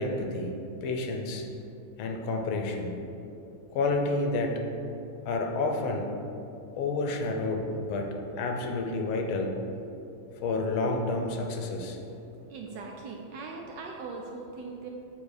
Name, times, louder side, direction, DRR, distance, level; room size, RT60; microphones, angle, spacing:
voice 1, 0.0-1.5 2.0-3.0 3.7-4.6 5.2-6.1 6.8-9.6 10.4-12.0, left 2 dB, 80° left, 2 dB, 1.6 m, -30 dB
voice 2, 12.3-14.9, right 4 dB, 75° right, 1 dB, 1.0 m, -40 dB
7.9 x 3.2 x 6.4 m, 2.8 s
omnidirectional pair, 2.3 m